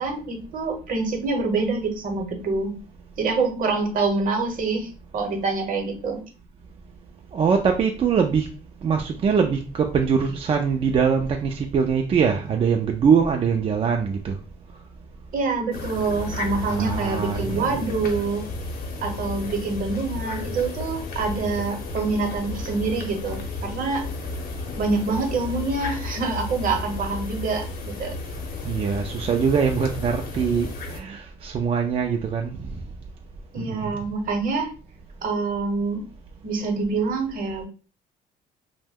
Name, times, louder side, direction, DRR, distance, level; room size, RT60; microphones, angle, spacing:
voice 1, 0.0-2.8 3.2-6.2 15.3-18.4 19.0-24.0 24.8-28.1 33.5-34.7 35.2-36.0 36.4-37.7, right 4 dB, 55° right, 4 dB, 0.9 m, -26 dB
voice 2, 7.3-8.5 8.8-14.4 16.7-17.8 28.6-32.6 33.6-34.0, right 6 dB, 35° right, 3 dB, 0.3 m, -23 dB
sound 1, 15.7-31.0, left 2 dB, 60° left, 0.8 m, -33 dB
2.6 x 2.1 x 3.5 m, 0.36 s
cardioid pair, 110°, 17 cm